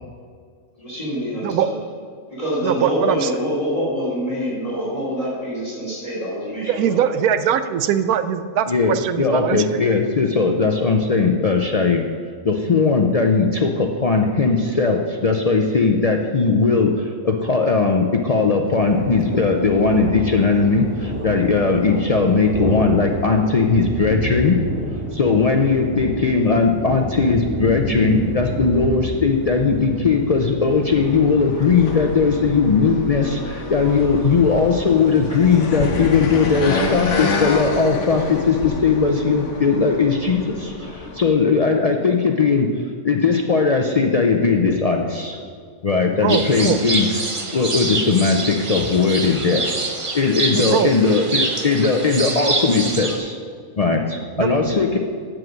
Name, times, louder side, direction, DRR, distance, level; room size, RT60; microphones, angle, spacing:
voice 1, 0.8-1.7 2.3-7.3, equal, 25° left, -6 dB, 2.8 m, -25 dB
voice 2, 2.6-3.3 6.7-9.6 46.2-46.8 50.5-50.9 54.4-54.5 54.9-55.0, right 9 dB, 80° right, 11 dB, 1.1 m, -21 dB
voice 3, 8.7-12.1 12.4-24.6 25.1-42.7 43.0-45.4 45.8-49.7 50.1-53.4 53.8-55.0, left 4 dB, 80° left, 2 dB, 0.3 m, -18 dB
sound 1, 18.7-36.8, right 1 dB, 10° right, 1.6 m, -30 dB
sound 2, 30.7-41.3, left 3 dB, 55° left, 1.3 m, -28 dB
sound 3, 46.3-53.2, right 3 dB, 30° right, 0.6 m, -26 dB
7.8 x 7.4 x 6.2 m, 2.1 s
omnidirectional pair, 1.5 m